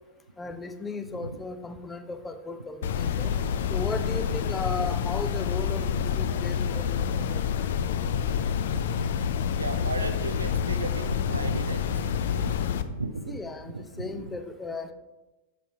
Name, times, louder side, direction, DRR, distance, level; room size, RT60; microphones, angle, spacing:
voice 1, 0.4-3.3 3.7-8.0 13.3-14.9, left 3 dB, 15° left, 9 dB, 0.6 m, -36 dB
sound 1, 2.8-12.8, left 7 dB, 60° left, 0.4 m, -28 dB
voice 2, 8.7-9.1 9.6-12.1 12.4-12.6 12.8-13.4 13.6-14.4, right 3 dB, 80° right, 9 dB, 0.5 m, -35 dB
7.1 x 4.3 x 5.8 m, 1.1 s
figure-of-eight pair, 90°, 0 cm